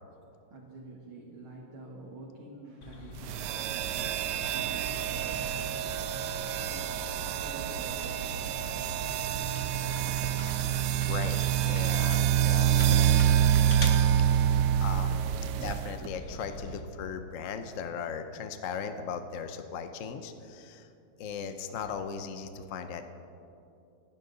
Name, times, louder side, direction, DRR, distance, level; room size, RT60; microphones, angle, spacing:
voice 1, 0.5-6.0 6.7-9.2, right 3 dB, 70° right, -3 dB, 2.5 m, -48 dB
sound 1, 2.8-16.8, left 2 dB, 40° left, 1.4 m, -43 dB
sound 2, 3.2-16.1, right 10 dB, 90° right, 0.9 m, -27 dB
voice 2, 10.9-12.7 14.8-15.2 15.6-20.9 21.2-23.1, left 6 dB, 60° left, 8 dB, 0.8 m, -38 dB
28.0 x 10.5 x 4.0 m, 2.7 s
omnidirectional pair, 2.4 m